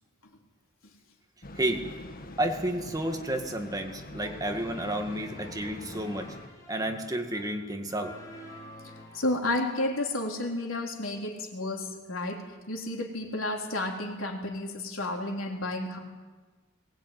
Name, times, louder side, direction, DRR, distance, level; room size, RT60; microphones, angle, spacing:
sound 1, 1.4-6.5, left 2 dB, 45° left, 1.6 m, -44 dB
voice 1, 2.4-6.3 6.7-8.1, right 1 dB, 20° right, 4 dB, 2.0 m, -31 dB
sound 2, 4.2-9.3, left 1 dB, 20° left, 5.0 m, -48 dB
voice 2, 9.1-12.4 12.7-16.0, left 1 dB, 85° left, 2 dB, 3.7 m, -31 dB
21.5 x 19.5 x 9.5 m, 1.4 s
head